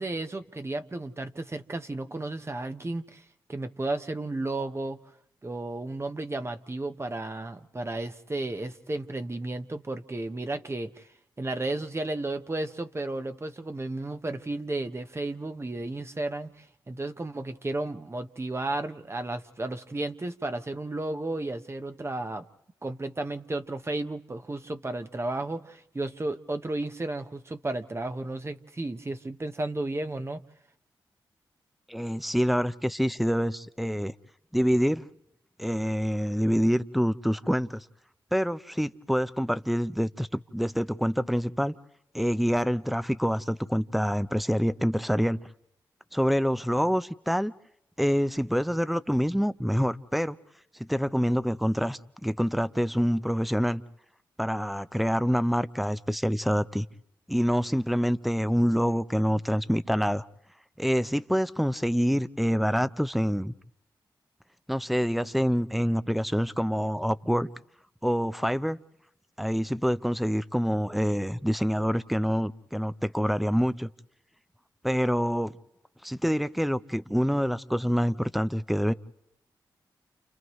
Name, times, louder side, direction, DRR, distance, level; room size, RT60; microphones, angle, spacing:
voice 1, 0.0-5.0 5.4-11.1 11.4-22.5 22.8-30.4, right 2 dB, 30° right, 8 dB, 1.1 m, -33 dB
voice 2, 31.9-34.1 34.5-35.1 35.6-37.8 38.3-41.7 42.1-45.4 46.1-47.5 48.0-50.4 50.8-53.8 54.4-56.9 57.3-60.2 60.8-63.5 64.7-67.5 68.0-68.8 69.4-73.9 74.8-75.5 76.0-78.9, equal, ahead, 15 dB, 0.7 m, -26 dB
30.0 x 28.5 x 3.2 m, 0.79 s
supercardioid pair, 45°, 9 cm